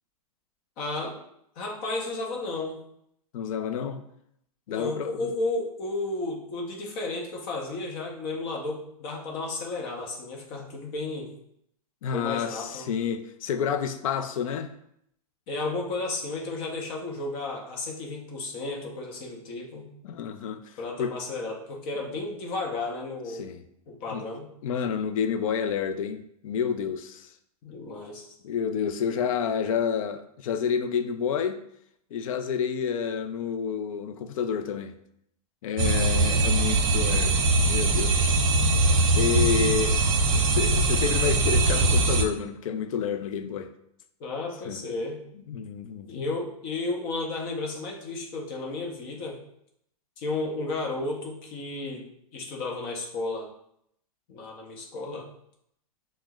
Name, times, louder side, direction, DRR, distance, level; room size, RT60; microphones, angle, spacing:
voice 1, 0.8-1.2 1.6-2.8 4.7-11.3 12.1-12.8 15.5-19.9 20.8-23.4 23.9-24.5 27.6-28.3 44.2-45.2 46.1-49.4 50.2-52.0 52.3-53.5 54.3-55.3, left 2 dB, 35° left, -1 dB, 0.8 m, -33 dB
voice 2, 3.3-4.0 4.7-5.2 12.0-14.7 20.0-21.2 23.3-23.6 24.1-24.2 24.6-27.3 28.4-31.6 32.1-34.9 35.6-38.4 39.0-40.0 40.3-43.7 44.6-44.8 45.5-46.3, left 7 dB, 60° left, 9 dB, 0.4 m, -29 dB
sound 1, 35.8-42.2, right 2 dB, 55° right, 0.6 m, -22 dB
6.0 x 2.1 x 2.3 m, 0.73 s
hypercardioid pair, 150°, 20 cm